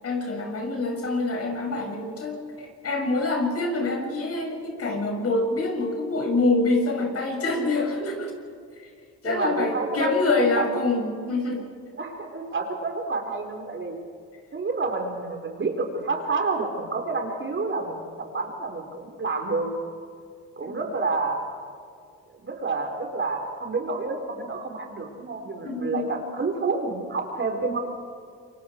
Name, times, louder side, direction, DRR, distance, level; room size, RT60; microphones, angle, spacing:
voice 1, 0.0-8.3 8.8-8.9 9.2-11.7 20.6-20.9 25.6-26.1, left 2 dB, 50° left, 2 dB, 6.9 m, -26 dB
voice 2, 9.2-10.7 12.0-14.0 14.5-19.7 20.6-21.5 22.4-27.8, right 3 dB, 40° right, 3 dB, 4.4 m, -29 dB
28.5 x 24.0 x 4.7 m, 2.2 s
cardioid pair, 90°, 30 cm